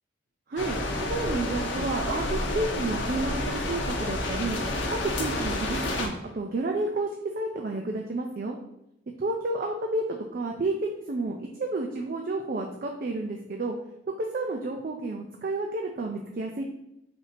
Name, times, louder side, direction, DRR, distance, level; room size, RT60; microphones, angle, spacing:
voice 1, 0.5-4.6 4.9-8.6 9.2-13.8 14.2-16.6, right 2 dB, 45° right, 1 dB, 0.4 m, -31 dB
sound 1, 0.6-6.1, left 1 dB, 75° left, 0.8 m, -29 dB
4.3 x 2.7 x 4.1 m, 0.83 s
head